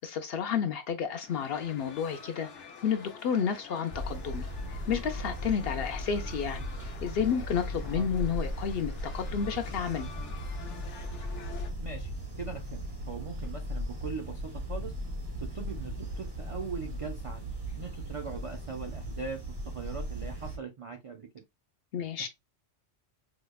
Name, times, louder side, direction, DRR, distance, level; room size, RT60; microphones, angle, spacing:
voice 1, 0.0-10.1 21.9-22.3, left 7 dB, 65° left, 0.7 m, -31 dB
sound 1, 1.3-11.7, left 6 dB, 80° left, 1.1 m, -48 dB
sound 2, 3.9-20.6, equal, 25° right, 0.7 m, -37 dB
voice 2, 11.8-12.1 12.4-14.9 15.4-19.4 19.6-21.3 22.2-22.3, right 5 dB, 55° right, 0.3 m, -40 dB
4.9 x 2.1 x 2.2 m
omnidirectional pair, 1.2 m